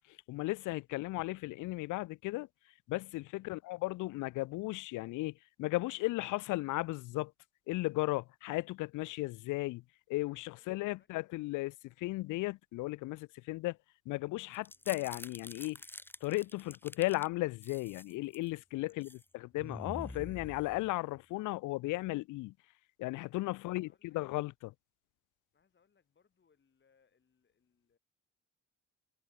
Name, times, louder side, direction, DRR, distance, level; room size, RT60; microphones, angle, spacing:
voice 1, 0.3-2.5 2.9-7.3 7.7-9.8 10.1-13.8 14.1-15.8 16.2-22.5 23.0-24.7, left 20 dB, 85° left, 0.5 m, -35 dB
voice 2, 10.7-11.1 14.7-14.9 18.7-19.2 23.6-24.2 25.5-28.0, left 6 dB, 40° left, 4.9 m, -74 dB
sound 1, 14.5-17.3 17.6-18.5 18.9-19.2 19.6-21.2, left 1 dB, 5° left, 0.9 m, -47 dB
cardioid pair, 90°, 30 cm